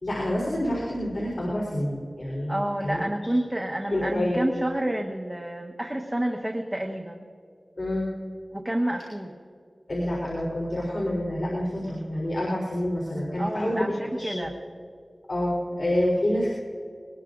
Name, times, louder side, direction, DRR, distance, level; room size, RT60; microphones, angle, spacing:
voice 1, 0.0-3.0 3.9-4.4 7.8-8.1 9.9-14.5 15.3-16.5, left 1 dB, 70° left, -4 dB, 3.7 m, -27 dB
voice 2, 2.5-7.3 8.5-9.4 13.4-14.5, right 1 dB, 15° right, 2 dB, 1.1 m, -29 dB
22.5 x 20.0 x 2.6 m, 2.3 s
wide cardioid pair, 55°, 0 cm